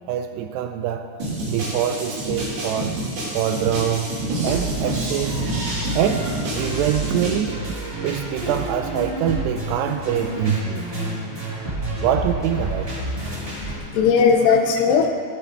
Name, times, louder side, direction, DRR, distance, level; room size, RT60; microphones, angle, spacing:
voice 1, 0.1-1.1 1.5-3.0 3.3-4.2 4.4-5.6 6.0-7.6 8.0-10.8 12.0-12.9, right 10 dB, 85° right, 7 dB, 2.5 m, -24 dB
sound 1, 1.2-7.4, right 1 dB, 60° right, 5.3 m, -28 dB
sound 2, 4.4-13.8, right 1 dB, 15° right, 3.3 m, -29 dB
voice 2, 13.3-15.1, left 5 dB, 75° left, 4 dB, 2.7 m, -19 dB
15.0 x 15.0 x 3.4 m, 2.2 s
omnidirectional pair, 5.1 m